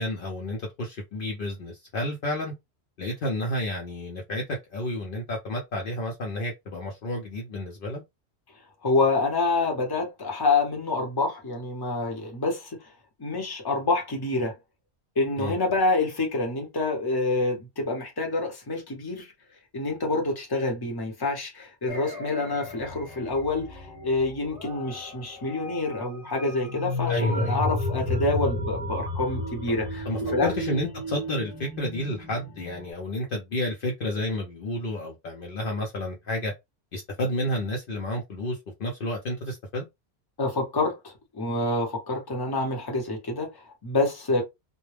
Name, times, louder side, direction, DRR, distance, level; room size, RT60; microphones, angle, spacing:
voice 1, 0.0-2.5 3.0-8.0 15.4-15.5 27.1-27.6 30.1-36.5 36.9-39.8, left 1 dB, 60° left, 0.7 m, -31 dB
voice 2, 8.8-12.8 13.2-14.6 15.2-19.3 19.7-30.5 40.4-44.4, left 3 dB, 25° left, 0.8 m, -27 dB
sound 1, 21.9-32.9, left 1 dB, 20° right, 1.1 m, -33 dB
2.2 x 2.1 x 3.2 m
omnidirectional pair, 1.1 m